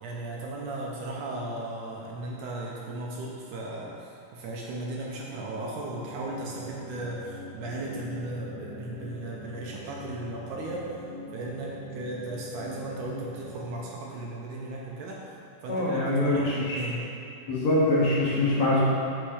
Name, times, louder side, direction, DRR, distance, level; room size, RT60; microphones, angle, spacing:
voice 1, 0.0-10.9 11.3-15.2 15.6-17.1, right 2 dB, 75° right, -3 dB, 2.1 m, -36 dB
sound 1, 5.9-13.7, left 2 dB, 25° right, 1.2 m, -43 dB
voice 2, 15.7-16.8 17.5-18.8, left 2 dB, 60° left, -7 dB, 2.2 m, -24 dB
6.7 x 5.7 x 4.9 m, 2.7 s
omnidirectional pair, 4.0 m